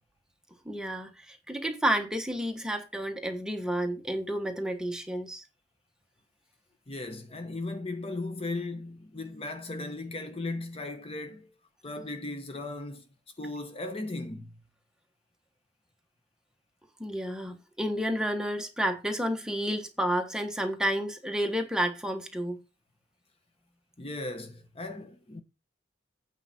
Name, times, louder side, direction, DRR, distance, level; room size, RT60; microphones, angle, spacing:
voice 1, 0.6-5.4 17.0-22.6, equal, 5° right, 1.2 m, -30 dB
voice 2, 6.9-11.5 11.8-13.1 13.4-14.6 24.0-25.4, left 2 dB, 30° left, 1.0 m, -37 dB
8.8 x 4.8 x 5.8 m
head